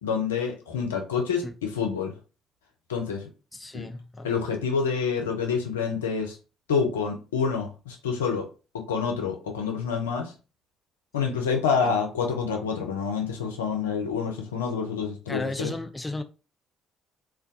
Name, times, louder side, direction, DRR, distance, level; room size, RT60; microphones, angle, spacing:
voice 1, 0.0-2.1 2.9-3.2 3.7-3.9 4.2-6.4 6.7-8.5 8.7-10.3 11.1-15.7, left 6 dB, 85° left, 0.4 m, -27 dB
voice 2, 3.5-4.3 11.7-12.0 15.3-16.2, left 2 dB, 15° left, 0.4 m, -34 dB
2.2 x 2.2 x 2.6 m
hypercardioid pair, 50°, 0 cm